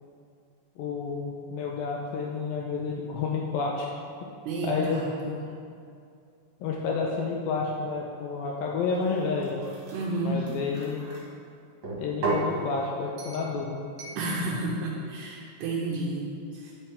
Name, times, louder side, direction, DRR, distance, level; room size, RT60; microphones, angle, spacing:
voice 1, 0.8-4.0 4.6-5.4 6.6-9.7 10.2-11.0 12.0-13.8, left 4 dB, 85° left, -1 dB, 2.1 m, -30 dB
voice 2, 4.5-5.3 9.9-10.5 14.2-16.7, right 2 dB, 80° right, -4 dB, 2.9 m, -31 dB
sound 1, 8.9-11.2 11.8-12.5 13.2-13.5 14.0-14.2, right 2 dB, 50° right, 2.7 m, -34 dB
9.7 x 8.8 x 3.5 m, 2.4 s
omnidirectional pair, 4.9 m